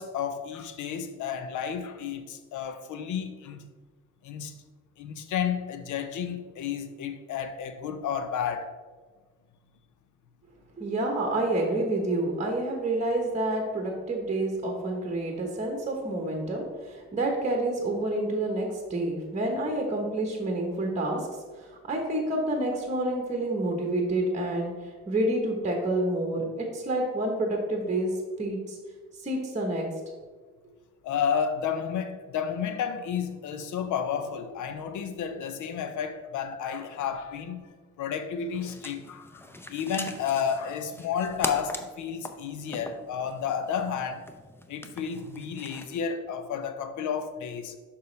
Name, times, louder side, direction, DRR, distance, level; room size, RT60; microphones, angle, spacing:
voice 1, 0.0-3.7 4.2-4.5 5.0-8.7 31.0-37.7 38.0-39.4 39.7-44.3 44.7-47.8, left 7 dB, 75° left, 0.7 m, -31 dB
voice 2, 10.8-21.3 21.5-28.8 29.1-29.9, right 1 dB, 25° right, 1.1 m, -28 dB
sound 1, 38.5-46.0, left 1 dB, 10° left, 0.5 m, -41 dB
6.7 x 5.4 x 3.3 m
cardioid pair, 90°, 30 cm